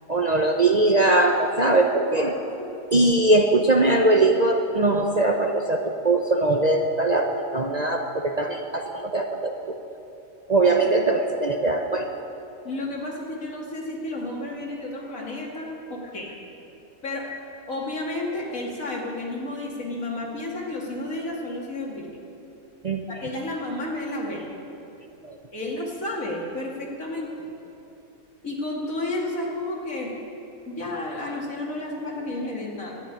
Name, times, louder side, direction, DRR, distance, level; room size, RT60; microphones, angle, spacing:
voice 1, 0.1-2.3 2.9-9.5 10.5-12.1 22.8-23.0 25.2-25.4, right 2 dB, 40° right, 3 dB, 0.7 m, -21 dB
voice 2, 2.1-2.7 10.8-10.9 12.6-16.4 17.0-17.3 17.7-22.2 23.1-24.5 25.5-27.3 28.4-30.2 30.7-32.9, left 2 dB, 70° left, -2 dB, 2.8 m, -32 dB
12.5 x 10.0 x 9.9 m, 2.8 s
omnidirectional pair, 1.5 m